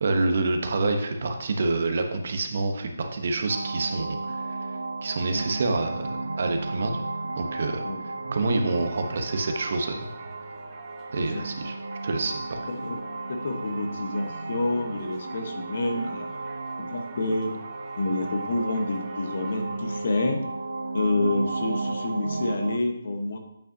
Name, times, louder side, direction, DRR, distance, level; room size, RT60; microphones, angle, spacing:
voice 1, 0.0-4.6 5.0-7.0 7.3-7.9 8.3-10.1 11.1-11.7 12.0-12.7, right 3 dB, 55° right, 5 dB, 0.9 m, -27 dB
sound 1, 3.5-22.8, right 3 dB, 90° right, 0.6 m, -34 dB
Singing / Church bell, 8.3-20.3, right 4 dB, 15° right, 0.9 m, -50 dB
voice 2, 11.1-11.4 12.7-13.0 13.3-16.3 16.8-17.5 18.0-20.4 20.9-23.4, left 2 dB, 60° left, 5 dB, 1.1 m, -28 dB
8.6 x 5.5 x 2.7 m, 0.82 s
hypercardioid pair, 160°, 0 cm